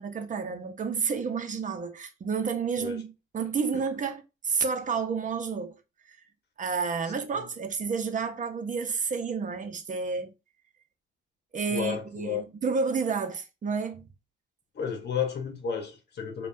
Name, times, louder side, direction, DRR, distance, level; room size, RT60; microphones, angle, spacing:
voice 1, 0.0-5.8 6.1-6.2 6.6-10.3 11.5-14.1, right 5 dB, 40° right, 0.8 m, -30 dB
voice 2, 11.7-12.4 14.7-16.5, left 7 dB, 55° left, 1.0 m, -32 dB
5.2 x 2.4 x 2.6 m
cardioid pair, 90°, 20 cm